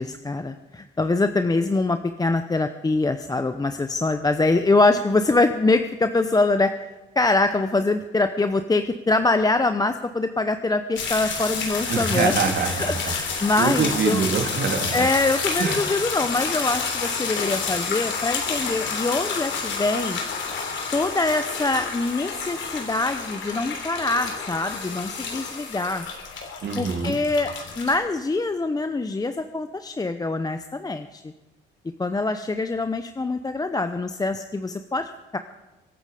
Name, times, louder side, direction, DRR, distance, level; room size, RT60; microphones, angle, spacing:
voice 1, 0.0-6.7 7.2-12.4 12.8-14.2 14.9-20.2 20.9-26.1 26.8-31.3 32.0-35.4, left 2 dB, 20° left, 9 dB, 0.8 m, -24 dB
sound 1, 11.0-28.0, left 5 dB, 70° left, 3.3 m, -29 dB
voice 2, 11.9-12.9 13.6-15.0 15.6-15.8 26.6-27.2, right 6 dB, 60° right, 4 dB, 2.5 m, -24 dB
24.5 x 8.8 x 5.0 m, 1.2 s
cardioid pair, 90°, 20 cm